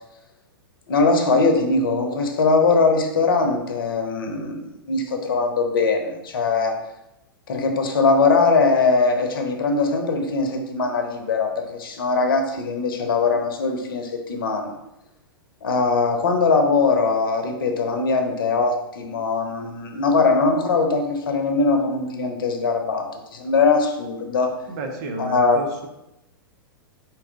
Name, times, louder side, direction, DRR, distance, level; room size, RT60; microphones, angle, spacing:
voice 1, 0.9-6.7 7.5-14.7 15.6-24.5 25.2-25.6, left 4 dB, 65° left, 4 dB, 0.8 m, -21 dB
voice 2, 24.7-25.9, right 2 dB, 45° right, 3 dB, 0.8 m, -31 dB
4.8 x 3.0 x 3.6 m, 0.88 s
figure-of-eight pair, 105°, 12 cm